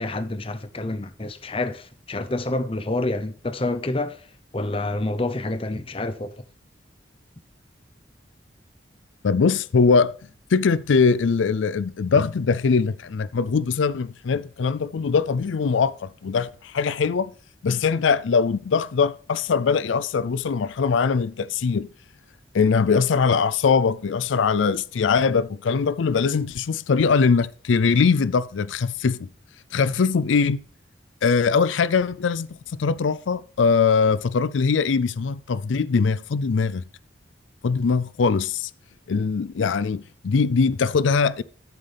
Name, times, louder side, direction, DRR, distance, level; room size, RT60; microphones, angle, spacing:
voice 1, 0.0-4.3 4.5-6.5, left 2 dB, 30° left, 0.8 m, -28 dB
voice 2, 9.2-10.1 10.5-17.3 17.6-21.9 22.5-29.3 29.7-30.6 31.2-36.9 37.6-38.7 39.1-41.4, left 5 dB, 90° left, 0.4 m, -21 dB
13.0 x 7.5 x 3.4 m
head